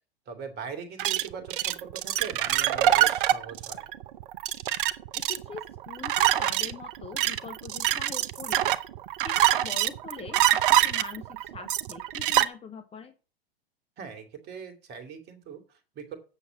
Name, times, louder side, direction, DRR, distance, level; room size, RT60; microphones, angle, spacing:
voice 1, 0.3-3.8 14.0-16.2, right 6 dB, 35° right, 6 dB, 2.5 m, -41 dB
sound 1, 1.0-12.5, right 13 dB, 60° right, 0.8 m, -25 dB
voice 2, 5.1-8.8 9.2-13.1, left 6 dB, 20° left, 9 dB, 1.0 m, -43 dB
8.3 x 7.0 x 5.9 m, 0.35 s
hypercardioid pair, 100°, 30 cm